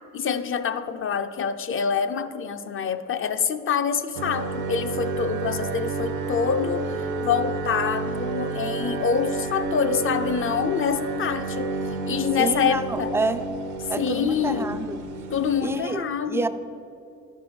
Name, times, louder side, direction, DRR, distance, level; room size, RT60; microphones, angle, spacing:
voice 1, 0.1-11.8 12.1-13.1 14.0-14.9 15.3-16.5, left 6 dB, 45° left, 9 dB, 0.5 m, -26 dB
sound 1, 4.2-15.8, right 3 dB, 80° right, 0.7 m, -30 dB
voice 2, 12.4-13.5 13.9-15.0 15.6-16.5, right 3 dB, 10° right, 10 dB, 0.3 m, -28 dB
12.0 x 4.7 x 4.3 m, 2.6 s
cardioid pair, 90°, 30 cm